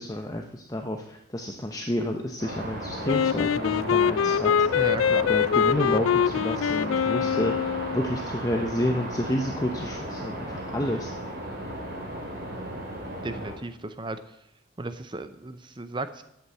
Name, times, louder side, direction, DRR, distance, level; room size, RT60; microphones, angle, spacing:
voice 1, 0.0-4.8 5.3-11.1, left 1 dB, 20° left, 3 dB, 0.8 m, -30 dB
sound 1, 2.4-13.5, right 1 dB, 50° right, 3.9 m, -35 dB
Wind instrument woodwind instrument, 3.1-8.1, left 8 dB, 90° left, 0.4 m, -24 dB
voice 2, 4.7-5.3 10.8-10.9 13.2-14.2 14.8-16.2, right 2 dB, 25° right, 10 dB, 0.6 m, -34 dB
11.5 x 8.4 x 7.7 m, 0.79 s
head